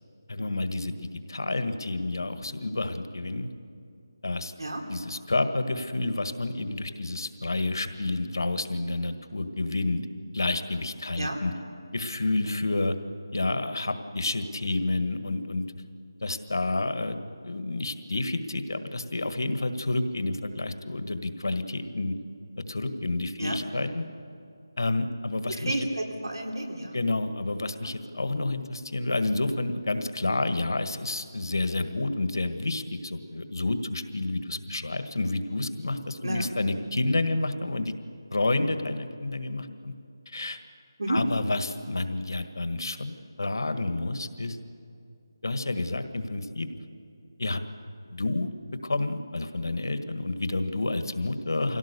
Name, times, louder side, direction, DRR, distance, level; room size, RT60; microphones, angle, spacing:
voice 1, 0.3-1.0 1.3-3.5 4.2-4.5 4.9-10.0 10.3-11.5 11.9-12.9 13.3-15.6 16.2-17.2 17.4-22.1 22.7-24.0 24.8-25.9 26.9-37.9 38.3-39.9 40.3-40.6 41.1-44.6 45.4-46.7 47.4-47.6 48.1-48.5 48.8-51.8, left 2 dB, 65° left, 8 dB, 1.6 m, -29 dB
voice 2, 25.5-27.0 27.8-27.9 36.2-36.5 41.0-41.2, right 1 dB, 85° right, 2 dB, 3.6 m, -31 dB
24.5 x 17.0 x 6.8 m, 2.5 s
figure-of-eight pair, 180°, 2 cm